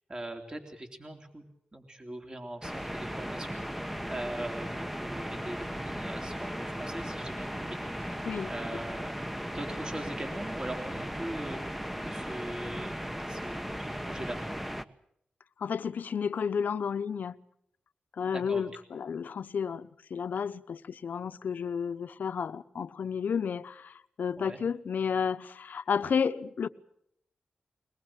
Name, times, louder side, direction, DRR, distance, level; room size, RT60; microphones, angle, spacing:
voice 1, 0.1-1.4 1.7-7.8 8.5-9.1 9.5-11.6 12.0-13.0 13.3-14.4 18.2-18.6 24.4-24.6, right 1 dB, 25° right, 3.4 m, -41 dB
sound 1, 2.6-14.8, equal, 5° right, 1.1 m, -37 dB
voice 2, 15.6-17.3 18.2-26.7, left 6 dB, 75° left, 0.9 m, -32 dB
22.0 x 21.5 x 7.5 m
wide cardioid pair, 85°, 3 cm